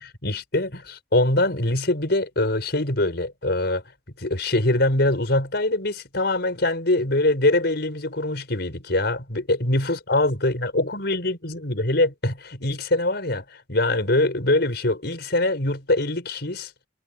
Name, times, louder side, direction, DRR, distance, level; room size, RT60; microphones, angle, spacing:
voice 1, 0.2-3.8 4.2-16.7, left 2 dB, 65° left, 5.5 m, -23 dB
head